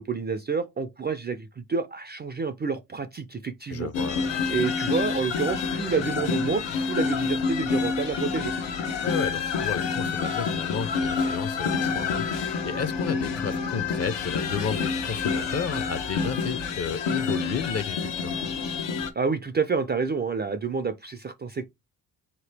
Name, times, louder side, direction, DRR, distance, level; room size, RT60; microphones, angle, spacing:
voice 1, 0.0-3.9 4.5-8.5 19.2-21.6, right 5 dB, 25° right, 0.3 m, -29 dB
voice 2, 3.7-4.3 9.0-18.4, left 6 dB, 35° left, 0.5 m, -32 dB
sound 1, 3.9-19.1, left 5 dB, 80° left, 0.9 m, -28 dB
4.1 x 2.9 x 3.2 m
cardioid pair, 90°, 43 cm